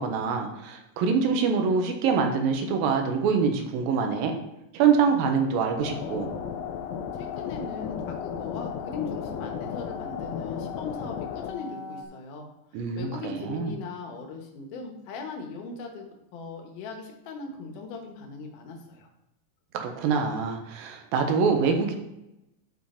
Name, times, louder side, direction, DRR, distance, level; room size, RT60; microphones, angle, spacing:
voice 1, 0.0-4.4 4.7-6.3 12.7-13.7 19.7-22.0, right 5 dB, 85° right, 4 dB, 2.7 m, -25 dB
sound 1, 5.8-12.0, left 7 dB, 85° left, 2.5 m, -34 dB
voice 2, 7.1-19.1, left 4 dB, 70° left, 3 dB, 2.6 m, -39 dB
11.0 x 4.8 x 4.2 m, 0.90 s
omnidirectional pair, 4.2 m